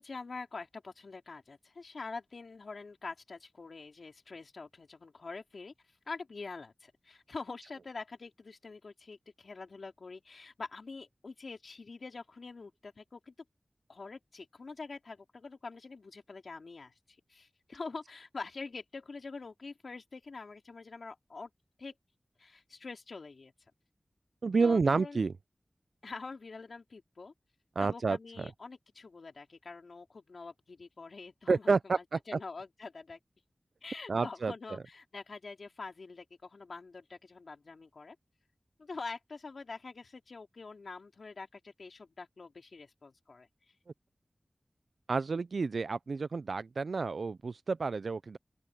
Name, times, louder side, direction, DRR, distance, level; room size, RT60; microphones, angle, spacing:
voice 1, 0.0-5.7 6.1-13.3 13.9-16.9 17.3-21.5 21.8-21.9 22.4-23.5 24.6-25.3 26.0-27.3 27.8-33.2 33.8-38.2 38.8-43.5, left 4 dB, 85° left, 3.5 m, -45 dB
voice 2, 24.4-25.3 27.8-28.5 31.5-32.4 34.1-34.5 45.1-48.4, right 4 dB, 85° right, 0.4 m, -30 dB
open air
wide cardioid pair, 55°, 0 cm